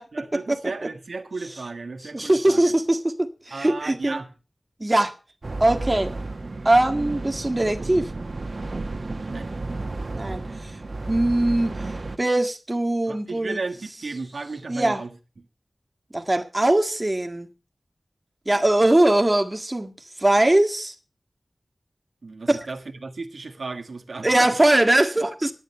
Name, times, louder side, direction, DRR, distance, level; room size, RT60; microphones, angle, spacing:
voice 1, 0.1-2.7 3.5-4.3 9.3-9.5 13.1-15.1 22.2-24.6, right 3 dB, 85° right, 1.6 m, -34 dB
voice 2, 2.1-4.2 4.8-5.1 5.6-6.1 6.7-8.1 10.1-10.7 11.1-11.7 12.2-13.6 14.7-15.0 16.1-17.5 18.5-19.9 20.2-20.9 22.5-22.7 24.2-25.5, right 1 dB, 30° right, 1.7 m, -21 dB
sound 1, 5.4-12.2, right 2 dB, 60° right, 1.5 m, -32 dB
11.0 x 9.9 x 5.6 m
wide cardioid pair, 50°, 0 cm